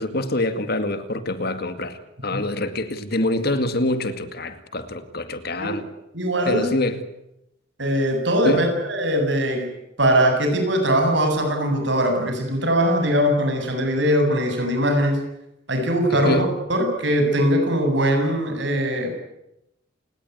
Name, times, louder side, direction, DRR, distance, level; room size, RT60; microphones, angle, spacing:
voice 1, 0.0-5.9 6.4-7.0 8.4-8.7 16.1-16.5, left 1 dB, 55° left, 10 dB, 2.2 m, -25 dB
voice 2, 6.1-6.7 7.8-9.7 10.0-15.2 15.7-19.1, equal, 65° right, 5 dB, 7.9 m, -21 dB
29.5 x 19.0 x 9.6 m, 0.86 s
head